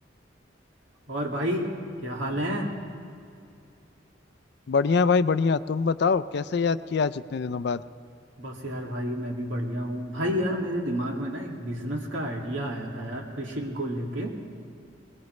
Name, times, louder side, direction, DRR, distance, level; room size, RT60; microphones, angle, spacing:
voice 1, 1.1-1.7 2.0-2.7 8.4-14.4, equal, 85° right, 0 dB, 2.3 m, -30 dB
voice 2, 4.7-7.8, left 5 dB, 60° left, 14 dB, 0.4 m, -24 dB
21.5 x 21.0 x 3.2 m, 2.5 s
head